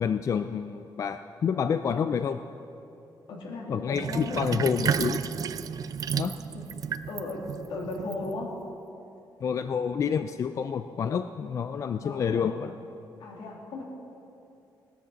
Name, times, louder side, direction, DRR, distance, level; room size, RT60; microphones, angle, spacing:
voice 1, 0.0-2.4 3.7-5.2 6.2-6.4 9.4-12.7, left 7 dB, 40° left, 9 dB, 0.3 m, -28 dB
voice 2, 3.3-4.5 6.5-6.6 7.1-8.5 12.0-12.5 13.2-13.8, left 2 dB, 85° left, -1 dB, 2.5 m, -36 dB
Sink (filling or washing), 3.9-8.7, right 7 dB, 50° right, 0.4 m, -32 dB
17.5 x 13.0 x 4.0 m, 2.7 s
wide cardioid pair, 160°, 8 cm